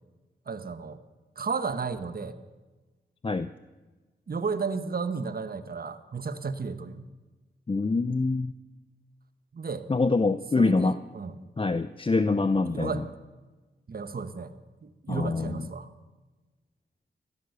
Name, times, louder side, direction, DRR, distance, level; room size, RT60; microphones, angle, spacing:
voice 1, 0.5-1.0 1.4-2.4 4.3-7.1 9.5-9.9 10.6-11.4 12.7-13.1 13.9-14.5 14.8-15.9, right 5 dB, 55° right, 12 dB, 1.2 m, -33 dB
voice 2, 7.7-8.5 9.9-11.0 11.6-13.0 15.1-15.7, left 3 dB, 30° left, 12 dB, 0.6 m, -25 dB
15.0 x 12.5 x 6.8 m, 1.3 s
cardioid pair, 60°, 19 cm